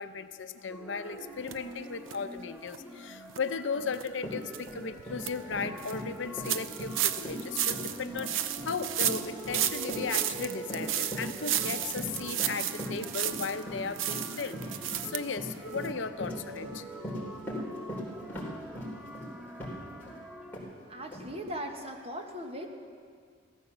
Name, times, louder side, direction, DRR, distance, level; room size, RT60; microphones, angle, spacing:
voice 1, 0.0-16.9, left 5 dB, 65° left, 10 dB, 0.7 m, -36 dB
sound 1, 0.7-20.6, right 1 dB, 5° right, 1.2 m, -46 dB
sound 2, 1.5-1.6 2.1-2.2 2.7-2.8 3.3-3.4 3.9-4.1 4.5-4.6 5.0-5.3 5.8-5.9 6.4-13.6 14.0-15.2 15.5-15.6 15.8-15.9, right 11 dB, 80° right, 0.6 m, -32 dB
Run, 3.8-3.9 4.2-20.2 20.5-20.7 21.1-21.2, equal, 10° left, 3.6 m, -39 dB
voice 2, 20.9-22.7, equal, 30° right, 3 dB, 1.5 m, -39 dB
15.5 x 13.5 x 6.8 m, 2.1 s
head